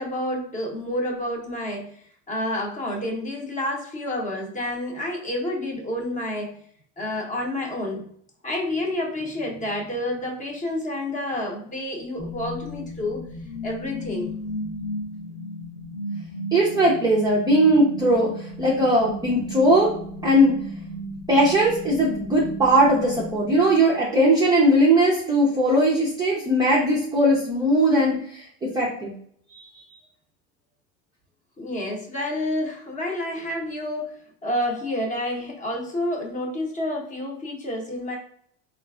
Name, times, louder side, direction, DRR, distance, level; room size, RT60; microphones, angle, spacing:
voice 1, 0.0-6.6 7.0-8.0 8.4-13.3 13.6-14.3 31.6-38.2, left 1 dB, 20° left, 0 dB, 0.7 m, -29 dB
sound 1, 12.2-24.2, equal, 55° left, 0.8 m, -35 dB
voice 2, 16.5-19.9 20.2-20.6 21.3-29.1 29.5-29.7, right 1 dB, 10° right, -5 dB, 0.4 m, -19 dB
3.8 x 2.4 x 2.2 m, 0.63 s
cardioid pair, 145°, 37 cm